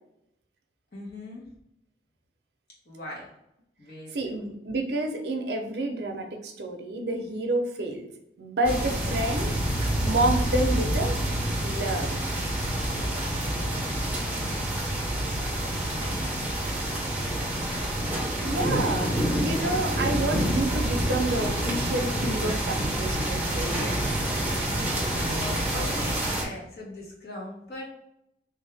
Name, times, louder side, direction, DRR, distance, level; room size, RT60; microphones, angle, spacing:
voice 1, 0.9-1.5 2.8-3.3 3.8-4.5 12.8-16.2 18.9-19.3 24.5-27.8, left 1 dB, 55° left, -4 dB, 1.2 m, -41 dB
voice 2, 4.1-8.1 8.4-9.6 10.0-11.2 11.6-12.1 18.4-19.1 19.4-24.0, right 2 dB, 65° right, 3 dB, 0.5 m, -29 dB
sound 1, 8.6-26.4, right 1 dB, 10° right, 0.6 m, -27 dB
3.4 x 2.7 x 3.3 m, 0.81 s
head